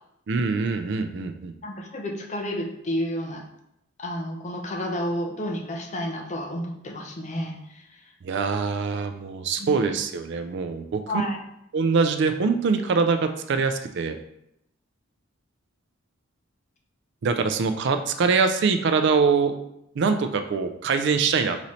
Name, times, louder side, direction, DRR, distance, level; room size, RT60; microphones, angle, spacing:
voice 1, 0.3-1.5 8.2-11.3 11.7-14.2 17.2-19.5 20.0-21.6, right 5 dB, 60° right, 8 dB, 0.4 m, -23 dB
voice 2, 1.6-3.4 4.0-7.6 9.6-9.7 11.1-11.4, equal, 35° left, 2 dB, 0.6 m, -30 dB
4.0 x 3.1 x 4.1 m, 0.80 s
head